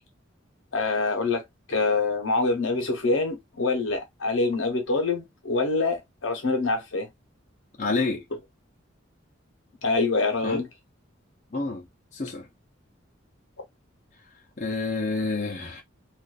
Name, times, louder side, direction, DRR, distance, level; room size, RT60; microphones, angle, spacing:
voice 1, 0.7-1.4 1.7-7.1 9.8-10.7, left 3 dB, 80° left, 0.8 m, -25 dB
voice 2, 7.8-8.2 10.4-10.6 11.5-11.8 12.1-12.5 14.6-15.8, left 3 dB, 35° left, 0.6 m, -28 dB
2.5 x 2.3 x 2.3 m
head